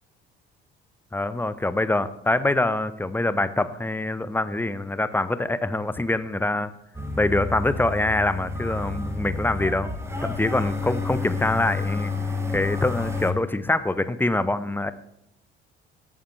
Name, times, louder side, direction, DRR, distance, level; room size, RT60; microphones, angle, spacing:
voice 1, 1.1-6.7 7.2-9.9 10.2-12.1 12.5-14.9, left 2 dB, 5° left, 14 dB, 0.7 m, -25 dB
sound 1, 6.9-13.3, left 3 dB, 10° right, 1.6 m, -30 dB
17.5 x 8.9 x 3.4 m, 0.76 s
figure-of-eight pair, 55°, 30 cm